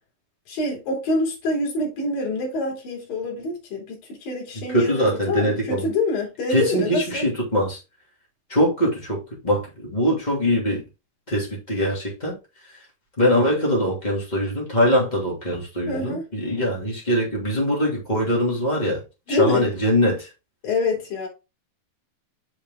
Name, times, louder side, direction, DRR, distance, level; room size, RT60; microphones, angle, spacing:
voice 1, 0.5-7.2 15.9-16.2 19.3-19.7 20.6-21.3, left 2 dB, 65° left, 4.5 m, -26 dB
voice 2, 4.7-5.9 6.5-7.8 8.5-10.8 11.3-12.3 13.2-19.0 19.3-20.3, equal, 15° left, 2.2 m, -22 dB
7.4 x 5.2 x 3.6 m
omnidirectional pair, 4.5 m